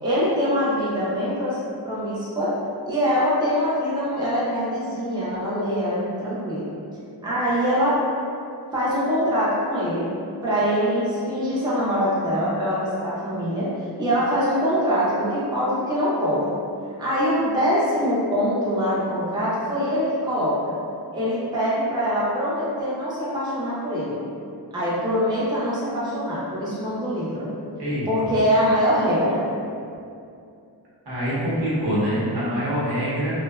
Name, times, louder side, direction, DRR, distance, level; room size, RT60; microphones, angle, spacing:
voice 1, 0.0-1.6 1.8-2.5 2.9-6.7 7.2-8.0 8.7-10.1 10.4-13.7 14.0-16.5 17.0-20.7 21.1-24.2 24.7-27.5 28.1-29.4, equal, 10° right, -9 dB, 0.4 m, -23 dB
voice 2, 31.1-33.3, equal, 70° right, -8 dB, 0.8 m, -24 dB
2.7 x 2.1 x 2.3 m, 2.5 s
wide cardioid pair, 145°, 41 cm